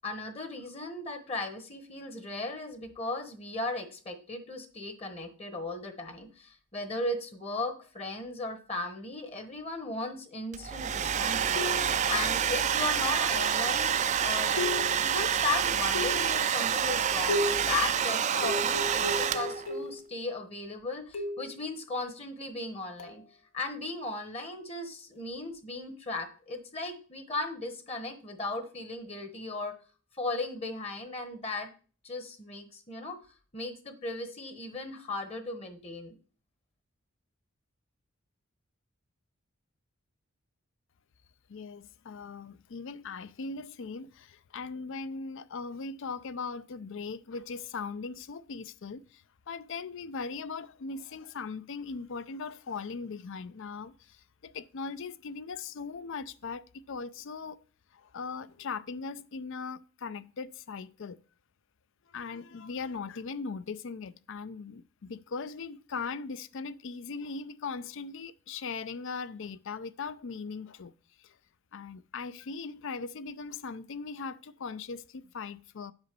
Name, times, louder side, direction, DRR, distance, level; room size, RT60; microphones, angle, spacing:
voice 1, 0.0-14.6 15.0-23.2 23.5-29.7 30.2-31.7 32.0-33.2 33.5-36.2, left 2 dB, 30° left, 1.1 m, -36 dB
Domestic sounds home sounds, 10.5-19.7, right 8 dB, 35° right, 0.4 m, -28 dB
sound 1, 11.6-12.1 13.4-13.7 14.6-15.2 15.9-16.4 17.3-17.8 18.4-20.1 21.1-21.6 23.0-23.2, left 2 dB, 80° left, 1.1 m, -34 dB
voice 2, 41.5-57.6 57.9-61.2 62.1-70.9 71.2-71.4 71.7-75.9, left 4 dB, 60° left, 0.4 m, -39 dB
8.1 x 4.0 x 6.7 m
head